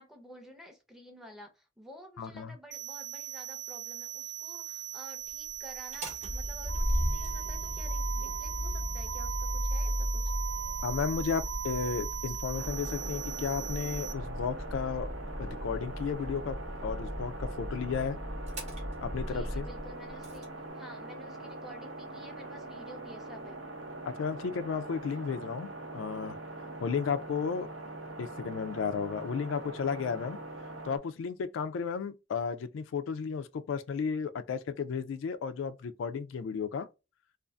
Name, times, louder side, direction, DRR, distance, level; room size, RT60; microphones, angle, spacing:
voice 1, 0.0-10.3 19.3-20.5 20.8-23.6, equal, ahead, 0.5 m, -51 dB
voice 2, 2.2-2.5 10.8-15.1 15.4-18.2 19.0-19.7 24.1-25.7 25.9-26.4 26.8-27.7 28.2-30.4 30.9-36.9, left 6 dB, 85° left, 0.3 m, -33 dB
sound 1, 2.7-14.1, right 11 dB, 65° right, 0.3 m, -40 dB
Motor vehicle (road), 5.8-20.4, right 1 dB, 35° right, 0.8 m, -35 dB
sound 2, 12.5-31.0, right 2 dB, 85° right, 0.7 m, -43 dB
2.5 x 2.4 x 2.2 m
head